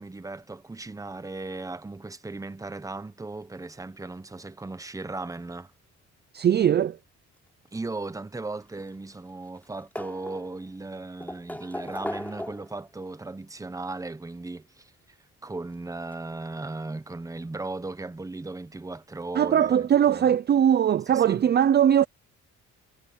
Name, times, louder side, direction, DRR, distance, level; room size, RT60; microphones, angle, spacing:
voice 1, 0.0-5.7 7.7-14.9 15.4-20.3 21.1-21.4, right 2 dB, 10° right, 1.0 m, -37 dB
voice 2, 6.3-7.0 19.4-22.1, right 9 dB, 35° right, 0.5 m, -20 dB
sound 1, 8.6-9.3 9.6-10.7 11.2-12.9 14.1-14.2 15.7-15.8 16.1-16.2, left 1 dB, 5° left, 5.6 m, -37 dB
cardioid pair, 130°, 29 cm